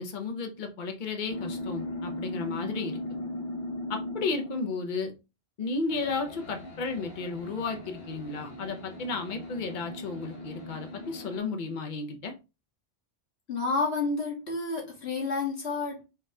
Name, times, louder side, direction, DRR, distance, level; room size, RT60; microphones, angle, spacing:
voice 1, 0.0-3.2 3.9-5.1 5.6-12.3, left 4 dB, 50° left, 1.0 m, -33 dB
sound 1, 1.3-4.8 5.9-11.4, left 1 dB, 65° left, 1.3 m, -38 dB
voice 2, 13.5-16.0, left 3 dB, 80° left, 1.9 m, -30 dB
4.7 x 3.0 x 3.5 m
omnidirectional pair, 1.1 m